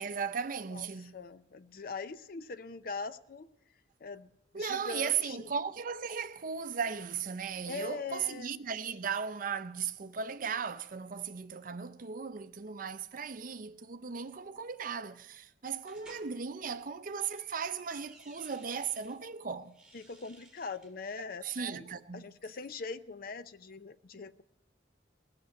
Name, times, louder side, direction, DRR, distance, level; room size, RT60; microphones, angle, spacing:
voice 1, 0.0-1.2 4.5-19.8 21.4-22.2, right 6 dB, 45° right, 0.6 m, -37 dB
voice 2, 1.1-3.5 4.0-5.5 7.7-8.5 19.9-21.9 22.1-24.4, left 4 dB, 50° left, 0.5 m, -42 dB
sound 1, 15.8-16.3 16.9-19.2 19.6-20.9, right 2 dB, 5° right, 2.1 m, -58 dB
16.5 x 6.8 x 9.3 m
head